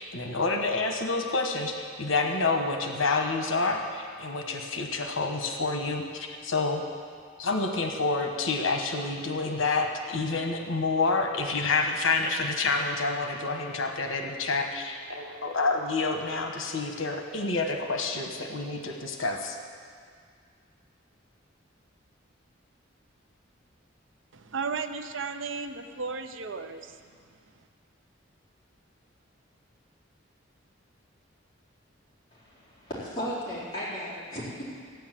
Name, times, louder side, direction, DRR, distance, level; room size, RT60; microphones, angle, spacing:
voice 1, 0.0-6.8 7.4-19.6, left 3 dB, 80° left, 3 dB, 1.2 m, -28 dB
voice 2, 24.3-27.0, right 4 dB, 70° right, 8 dB, 0.7 m, -34 dB
voice 3, 32.3-34.6, equal, 20° left, -9 dB, 3.8 m, -35 dB
14.0 x 9.4 x 7.6 m, 2.1 s
head